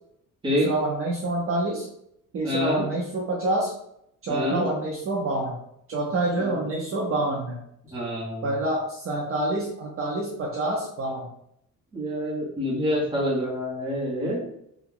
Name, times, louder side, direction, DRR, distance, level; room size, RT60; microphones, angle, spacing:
voice 1, 0.5-1.9 2.3-3.7 4.2-5.6 5.9-7.6 8.4-11.3, right 2 dB, 40° right, -3 dB, 0.6 m, -27 dB
voice 2, 2.4-2.9 4.3-4.6 6.4-6.5 7.9-8.5 11.9-14.4, equal, 15° right, -5 dB, 1.0 m, -27 dB
2.8 x 2.3 x 3.7 m, 0.76 s
cardioid pair, 160°, 33 cm